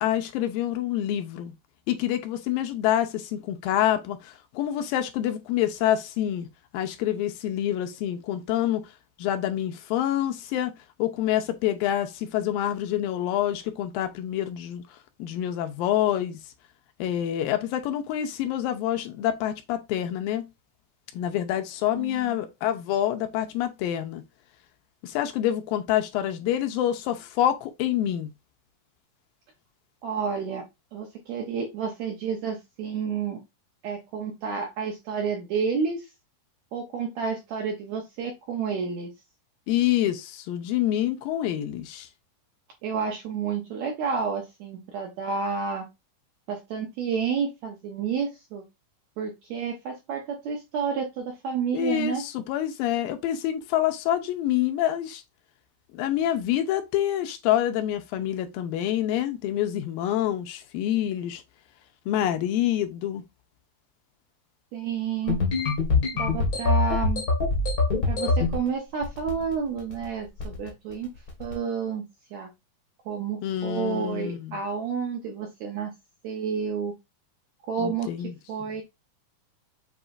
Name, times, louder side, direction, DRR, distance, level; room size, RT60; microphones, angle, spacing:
voice 1, 0.0-1.5 1.9-6.5 6.7-8.8 9.2-10.7 11.0-14.8 15.2-16.4 17.0-20.5 21.1-24.2 25.0-28.3 39.7-42.1 51.7-55.2 55.9-61.4 62.1-63.2 73.4-74.6 77.8-78.3, left 11 dB, 85° left, 2.4 m, -27 dB
voice 2, 22.0-22.4 30.0-30.6 30.9-33.4 33.8-36.1 36.7-39.1 42.8-45.9 46.5-48.6 49.2-52.2 64.7-65.4 66.1-67.2 68.0-71.1 71.4-72.0 72.3-72.5 73.0-75.9 76.2-76.9 77.7-78.8, right 6 dB, 75° right, 1.6 m, -30 dB
sound 1, 65.3-68.6 69.0-69.5 69.8-70.1 70.4-70.7 71.3-71.5, left 3 dB, 65° left, 0.9 m, -24 dB
7.1 x 2.9 x 2.4 m
omnidirectional pair, 4.2 m